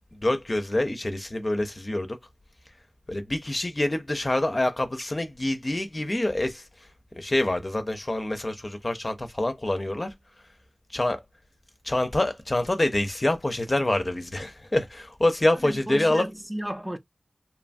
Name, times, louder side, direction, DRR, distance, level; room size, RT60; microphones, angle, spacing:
voice 1, 0.2-2.2 3.1-6.6 7.2-10.1 10.9-11.2 11.8-16.3, left 1 dB, 40° left, 0.5 m, -26 dB
voice 2, 15.5-17.0, right 1 dB, 15° right, 0.4 m, -34 dB
2.8 x 2.2 x 2.5 m
wide cardioid pair, 60°, 0 cm